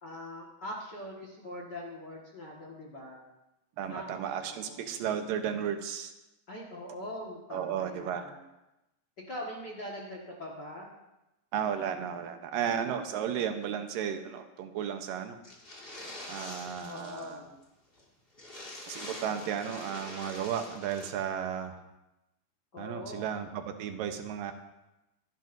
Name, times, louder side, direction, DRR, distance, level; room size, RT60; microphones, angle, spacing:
voice 1, 0.0-3.2 3.9-4.2 4.5-5.0 6.5-8.4 9.3-10.9 16.9-17.6 22.7-23.4, left 1 dB, 40° left, -3 dB, 1.7 m, -42 dB
voice 2, 3.8-6.1 7.5-8.3 11.5-15.4 16.3-17.4 18.9-21.8 22.8-24.5, right 8 dB, 80° right, 6 dB, 2.6 m, -34 dB
sound 1, 15.4-17.4 17.6-17.7 18.0-18.1 18.3-21.1, left 1 dB, 20° left, 1.6 m, -44 dB
25.5 x 10.5 x 2.6 m, 0.95 s
omnidirectional pair, 3.9 m